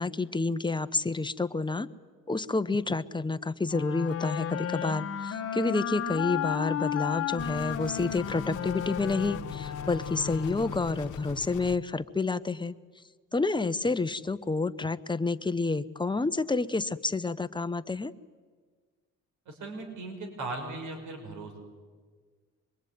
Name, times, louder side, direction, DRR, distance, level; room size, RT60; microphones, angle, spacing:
voice 1, 0.0-1.9 2.3-12.7 13.3-18.1, left 3 dB, 15° left, 11 dB, 0.9 m, -29 dB
sound 1, 3.7-11.1, left 9 dB, 50° left, 1.3 m, -34 dB
sound 2, 7.4-11.8, left 10 dB, 85° left, 1.0 m, -42 dB
voice 2, 19.5-21.6, right 2 dB, 80° right, 4 dB, 5.3 m, -38 dB
25.5 x 22.0 x 9.4 m, 1.5 s
cardioid pair, 90°, 30 cm